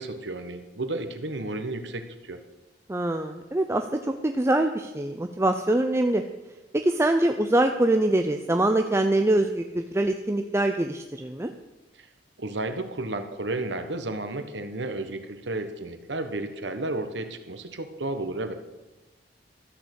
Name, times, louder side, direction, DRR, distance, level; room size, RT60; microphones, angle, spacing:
voice 1, 0.0-2.4 12.0-12.1 12.4-18.5, right 2 dB, 70° right, 8 dB, 1.3 m, -32 dB
voice 2, 2.9-3.8 4.2-6.2 6.8-11.5, right 1 dB, 15° right, 6 dB, 0.6 m, -24 dB
13.5 x 6.7 x 8.1 m, 1.1 s
head